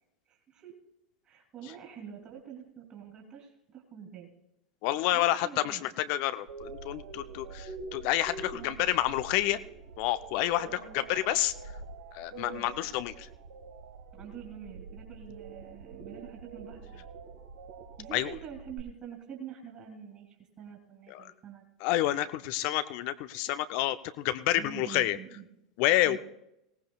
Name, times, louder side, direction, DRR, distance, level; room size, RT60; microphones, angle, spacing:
voice 1, 0.3-0.7 1.2-4.3 5.1-5.8 8.5-8.8 10.6-11.0 12.4-12.7 14.1-17.0 18.0-21.6 24.5-25.5 26.0-26.2, right 8 dB, 35° right, 1 dB, 2.9 m, -46 dB
voice 2, 4.8-9.6 10.0-11.5 12.1-13.3 18.1-18.3 21.1-21.3 21.8-25.2 25.8-26.2, left 14 dB, 50° left, 12 dB, 0.6 m, -29 dB
sound 1, 6.5-18.8, right 4 dB, 65° right, 1.4 m, -45 dB
20.0 x 17.0 x 2.3 m, 0.84 s
figure-of-eight pair, 85°, 3 cm